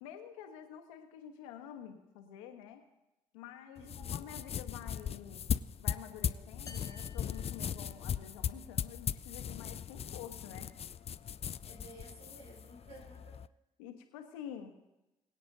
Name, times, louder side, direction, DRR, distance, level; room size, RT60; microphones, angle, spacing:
voice 1, 0.0-2.8 3.3-5.5 5.8-10.9 13.8-14.7, left 9 dB, 80° left, 6 dB, 1.3 m, -48 dB
sound 1, 3.8-13.5, left 8 dB, 35° left, 0.4 m, -38 dB
voice 2, 3.8-4.2 11.7-13.4, right 1 dB, 80° right, -4 dB, 4.8 m, -54 dB
sound 2, 6.7-8.4, left 3 dB, 20° left, 1.1 m, -55 dB
23.5 x 9.2 x 2.7 m, 0.97 s
hypercardioid pair, 40°, 17 cm